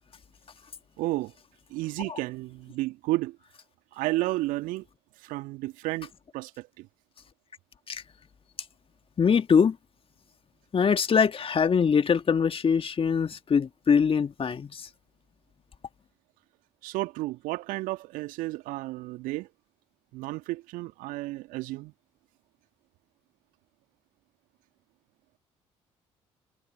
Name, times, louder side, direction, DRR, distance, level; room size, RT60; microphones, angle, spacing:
voice 1, 1.0-1.3 1.7-3.4 3.9-4.8 5.2-6.9 16.8-19.5 20.1-21.9, right 19 dB, 65° right, 1.7 m, -32 dB
voice 2, 9.2-9.8 10.7-14.9, left 6 dB, 40° left, 1.9 m, -23 dB
figure-of-eight pair, 50°, 15 cm